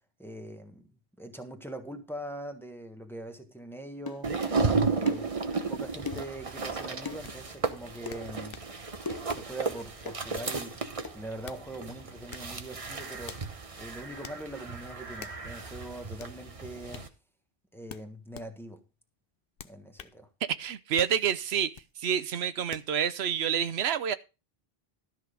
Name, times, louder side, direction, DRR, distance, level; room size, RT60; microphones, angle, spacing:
voice 1, 0.2-0.9 1.2-4.3 4.9-5.3 5.7-8.6 9.3-17.1 17.7-18.8 19.6-20.3, right 1 dB, ahead, 1.3 m, -42 dB
sound 1, 4.1-4.2 5.1-5.3 6.1-6.4 7.0-7.3 8.1-8.2 9.1-9.4 10.1-10.2 11.0-11.2, left 5 dB, 30° left, 0.5 m, -38 dB
sound 2, 4.2-17.1, right 4 dB, 35° right, 1.0 m, -34 dB
sound 3, 7.2-7.4 8.1-8.7 9.3-9.6 10.3-10.6 11.2-11.7 12.3-12.6 13.3-13.5 14.2-14.4 15.2-15.4 16.2-16.4 16.9-17.1 17.9-18.5 19.6-20.2 21.0-21.2 21.7-21.9 22.7-22.9, left 8 dB, 65° left, 0.9 m, -46 dB
voice 2, 20.4-21.7 22.0-24.2, right 8 dB, 80° right, 0.9 m, -28 dB
13.0 x 5.9 x 4.9 m
omnidirectional pair, 1.0 m